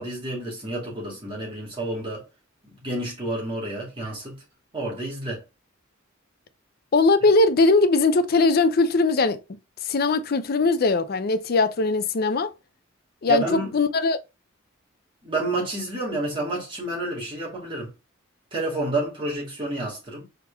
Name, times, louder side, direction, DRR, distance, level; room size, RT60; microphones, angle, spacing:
voice 1, 0.0-2.2 2.6-4.4 4.7-5.4 13.3-13.8 15.2-17.9 18.5-20.3, right 2 dB, 25° right, 2.2 m, -29 dB
voice 2, 6.9-9.4 9.9-12.5 13.2-13.4 13.7-14.2, left 3 dB, 50° left, 0.5 m, -20 dB
4.4 x 3.6 x 2.2 m
head